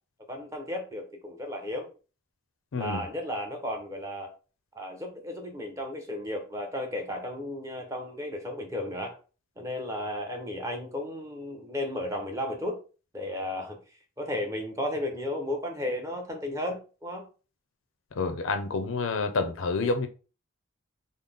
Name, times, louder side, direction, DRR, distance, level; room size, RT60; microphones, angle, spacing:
voice 1, 0.3-1.9 2.7-4.3 4.8-9.2 9.6-12.8 13.1-13.8 14.2-17.2, left 1 dB, 15° right, 0.7 m, -34 dB
voice 2, 2.7-3.0 18.2-20.1, left 3 dB, 75° left, 0.5 m, -28 dB
3.8 x 2.0 x 3.5 m
head